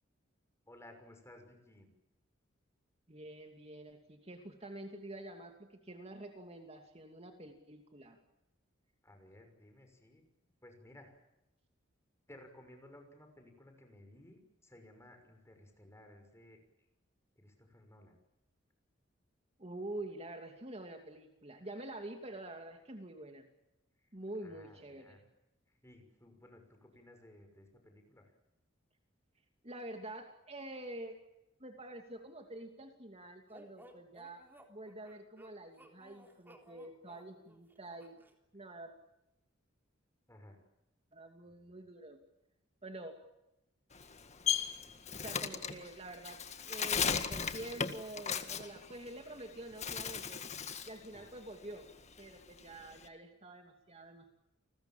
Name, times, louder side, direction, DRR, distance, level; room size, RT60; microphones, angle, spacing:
voice 1, 0.7-1.9 9.0-10.2 10.6-11.2 12.3-16.9 17.4-18.2 24.0-24.1 24.4-25.2 25.7-28.3 40.3-40.6 41.4-41.8 51.1-51.2, left 1 dB, 15° left, 5 dB, 6.1 m, -58 dB
voice 2, 3.1-8.2 19.6-23.5 24.1-25.2 29.6-31.2 31.6-38.2 38.5-39.0 41.1-42.2 42.8-43.2 45.2-50.4 50.9-51.9 52.2-54.3, right 1 dB, 30° right, 4 dB, 2.7 m, -47 dB
sound 1, 33.5-38.3, equal, 10° right, 3.5 m, -59 dB
Bird, 43.9-49.4 49.7-51.0 51.3-53.1, left 7 dB, 35° left, 1.8 m, -36 dB
29.5 x 21.0 x 7.4 m, 0.90 s
head